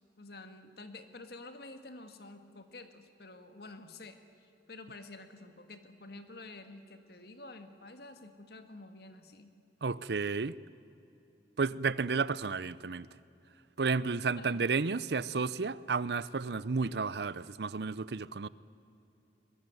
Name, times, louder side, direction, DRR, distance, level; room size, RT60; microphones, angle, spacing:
voice 1, 0.2-4.2 4.7-9.5 14.4-14.7, left 2 dB, 60° left, 1.9 m, -49 dB
voice 2, 9.8-10.5 11.6-13.1 13.8-18.5, right 4 dB, 65° right, 0.6 m, -32 dB
22.5 x 21.5 x 9.2 m
head